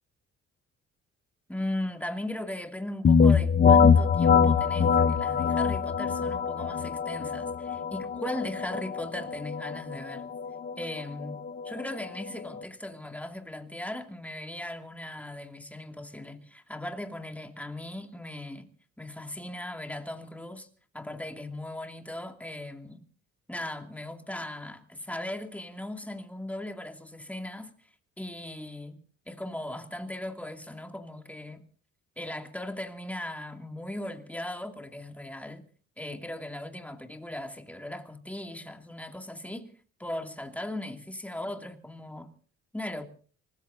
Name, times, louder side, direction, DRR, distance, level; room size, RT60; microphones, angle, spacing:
voice 1, 1.5-10.3 10.8-18.7 19.0-20.7 20.9-23.0 23.5-27.9 28.2-29.0 29.3-31.6 32.2-35.6 36.0-39.7 40.0-42.3 42.7-43.1, left 1 dB, 5° left, 2.6 m, -38 dB
sound 1, 3.0-12.6, left 6 dB, 30° left, 0.9 m, -24 dB
25.5 x 20.0 x 2.8 m
cardioid pair, 90°, 30 cm